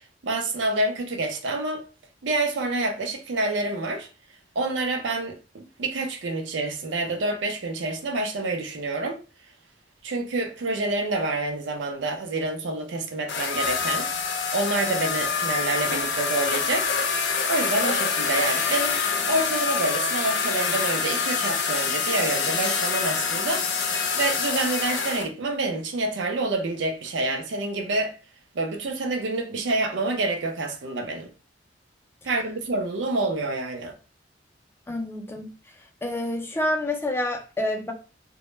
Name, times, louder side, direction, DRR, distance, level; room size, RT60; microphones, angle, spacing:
voice 1, 0.2-1.9 2.2-4.1 4.6-9.2 10.0-14.1 14.5-16.9 17.5-23.7 24.1-28.1 28.5-31.3 32.2-33.9, right 2 dB, 80° right, 0.5 m, -27 dB
sound 1, 13.3-25.3, left 5 dB, 70° left, 0.5 m, -26 dB
voice 2, 34.9-35.5 36.0-37.9, left 1 dB, 15° left, 0.3 m, -28 dB
2.1 x 2.0 x 3.0 m
head